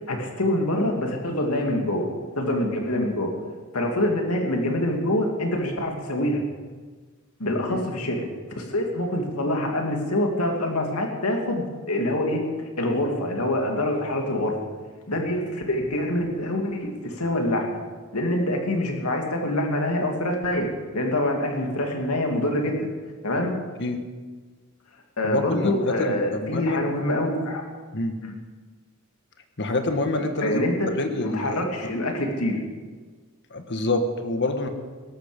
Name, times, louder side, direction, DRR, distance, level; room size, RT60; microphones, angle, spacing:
voice 1, 0.1-2.1 2.4-3.3 3.7-6.4 7.4-8.2 8.6-14.5 15.1-17.8 18.1-20.7 20.9-22.9 23.2-23.5 25.2-27.6 28.2-28.3 30.4-30.9 31.2-32.6, left 1 dB, 90° left, 1 dB, 2.7 m, -25 dB
voice 2, 25.3-26.8 27.9-28.2 29.6-30.7 31.0-31.6 33.5-34.7, left 2 dB, 55° left, 7 dB, 1.5 m, -26 dB
17.5 x 13.5 x 5.3 m, 1.4 s
head